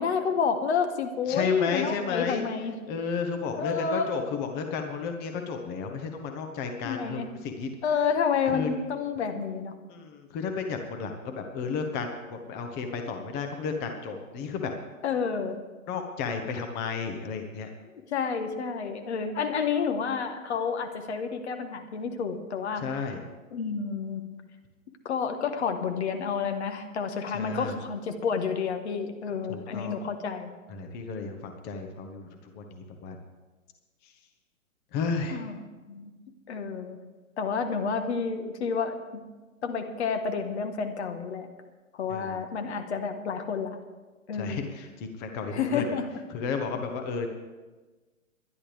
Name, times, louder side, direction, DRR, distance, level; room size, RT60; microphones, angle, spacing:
voice 1, 0.0-2.7 3.5-4.1 6.8-7.3 7.8-9.7 15.0-15.6 18.1-22.8 23.5-24.2 25.0-30.5 35.3-35.5 35.9-36.1 36.5-37.0 37.4-39.2 39.6-41.5 41.9-43.8 44.3-44.7 45.5-46.1, left 6 dB, 50° left, 6 dB, 1.5 m, -29 dB
voice 2, 1.3-2.4 2.9-7.7 8.5-8.7 9.9-14.7 15.9-17.7 22.8-23.2 27.3-27.8 29.5-29.9 30.7-33.2 34.0-34.1 34.9-35.4 42.1-42.4 44.3-45.8 46.3-47.3, left 5 dB, 25° left, 4 dB, 1.3 m, -33 dB
22.0 x 11.0 x 3.5 m, 1.3 s
hypercardioid pair, 130°, 41 cm